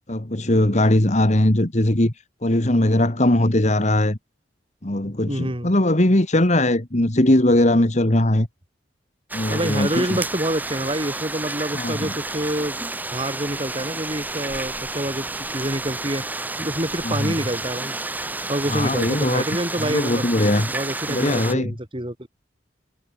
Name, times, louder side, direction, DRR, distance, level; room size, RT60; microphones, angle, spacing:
voice 1, 0.1-2.1 2.4-4.2 4.8-8.5 9.3-10.2 11.7-12.1 17.0-17.3 18.7-19.4 19.8-20.7 21.1-21.7, left 1 dB, 40° left, 1.8 m, -20 dB
voice 2, 5.3-5.7 9.5-12.8 13.1-16.2 16.6-17.9 18.5-20.2 20.7-22.3, right 1 dB, 30° right, 3.3 m, -27 dB
sound 1, 9.3-21.5, right 2 dB, 10° right, 0.7 m, -30 dB
head